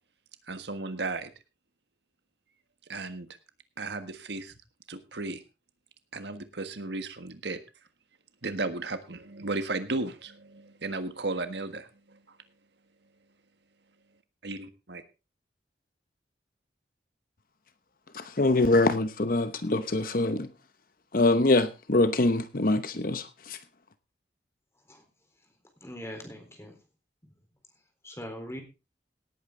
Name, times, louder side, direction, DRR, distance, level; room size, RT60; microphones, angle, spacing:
voice 1, 0.5-1.3 2.9-3.3 3.8-4.5 4.9-5.4 6.1-7.6 8.4-12.4 14.4-15.0, right 3 dB, 75° right, 1.5 m, -35 dB
voice 2, 18.1-20.5 21.1-23.6, left 2 dB, 50° left, 0.9 m, -24 dB
voice 3, 25.8-26.7 28.0-28.6, equal, 15° left, 3.9 m, -41 dB
18.0 x 8.9 x 3.8 m
head